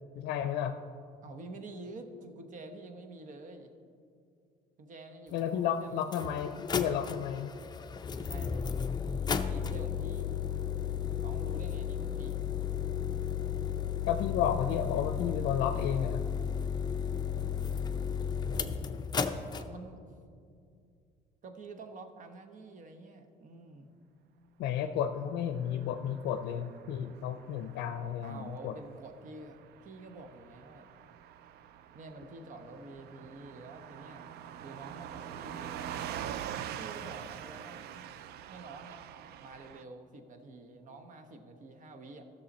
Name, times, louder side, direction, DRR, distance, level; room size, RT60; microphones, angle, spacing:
voice 1, 0.2-0.8 5.3-7.5 14.1-16.2 24.6-28.8, left 9 dB, 85° left, 7 dB, 0.5 m, -32 dB
voice 2, 1.2-3.7 4.8-6.2 8.1-8.8 9.4-10.4 11.2-12.4 19.5-20.0 21.4-23.9 28.2-30.9 31.9-34.3 34.6-36.1 36.7-38.1 38.5-39.0 39.4-42.2, right 2 dB, 50° right, 7 dB, 1.0 m, -48 dB
sound 1, 5.4-5.5 6.0-19.6, left 7 dB, 25° left, 0.5 m, -34 dB
Car passing by / Truck, 25.5-39.8, right 10 dB, 70° right, 0.4 m, -44 dB
14.0 x 6.6 x 4.2 m, 2.3 s
cardioid pair, 110°, 17 cm